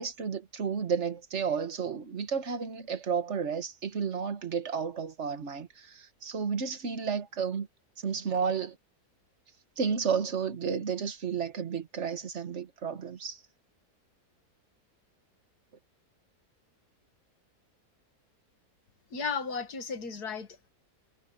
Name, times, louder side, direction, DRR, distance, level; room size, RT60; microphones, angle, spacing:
voice 1, 0.0-7.7 8.0-8.8 9.8-13.4, right 6 dB, 45° right, 1.7 m, -32 dB
voice 2, 19.1-20.7, left 5 dB, 80° left, 2.3 m, -35 dB
omnidirectional pair, 1.7 m